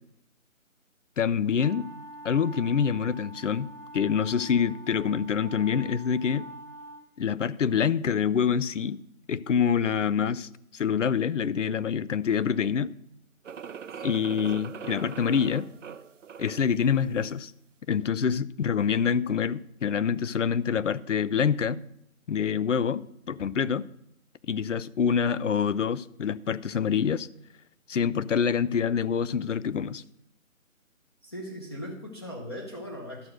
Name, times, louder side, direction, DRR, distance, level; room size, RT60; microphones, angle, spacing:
voice 1, 1.2-1.9 2.2-3.7 3.9-6.5 7.2-9.0 9.3-12.9 14.0-15.7 16.4-17.5 17.9-21.8 22.3-23.9 24.5-27.3 27.9-30.0, left 7 dB, 60° left, 0.5 m, -26 dB
sound 1, 1.6-7.1, right 1 dB, 10° right, 0.8 m, -45 dB
sound 2, 13.4-16.8, right 7 dB, 65° right, 0.5 m, -41 dB
voice 2, 31.2-33.3, equal, 20° left, 0.9 m, -39 dB
12.0 x 6.5 x 6.2 m
figure-of-eight pair, 155°, 42 cm